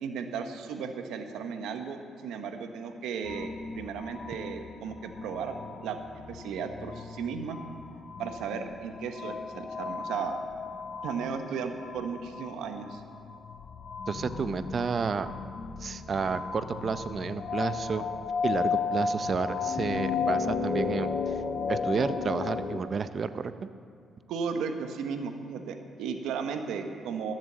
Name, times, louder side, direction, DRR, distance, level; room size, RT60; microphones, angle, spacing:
voice 1, 0.0-6.0 6.3-7.6 8.2-10.4 11.0-13.0 24.3-27.3, right 6 dB, 85° right, 6 dB, 1.1 m, -35 dB
sound 1, 3.2-22.8, left 5 dB, 50° left, 0.9 m, -34 dB
voice 2, 14.1-15.3 15.8-18.0 18.4-21.3 21.7-23.7, right 5 dB, 45° right, 12 dB, 0.6 m, -31 dB
13.5 x 7.4 x 7.4 m, 2.2 s
cardioid pair, 90°, 0 cm